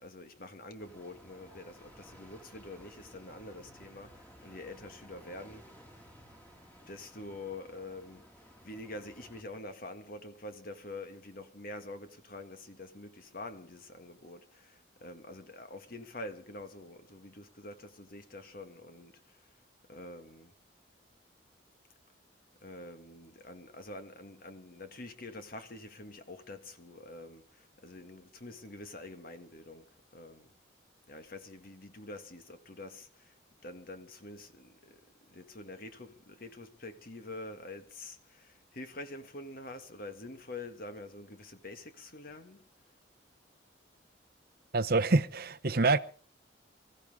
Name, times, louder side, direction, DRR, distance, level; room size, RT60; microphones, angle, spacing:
voice 1, 0.0-5.7 6.8-19.6 19.9-20.5 22.6-30.5 31.1-33.4 33.6-42.6, left 2 dB, 50° left, 1.9 m, -46 dB
sound 1, 0.8-9.4, equal, 10° left, 2.7 m, -56 dB
voice 2, 44.7-46.0, right 3 dB, 55° right, 0.8 m, -26 dB
25.0 x 14.5 x 3.7 m
head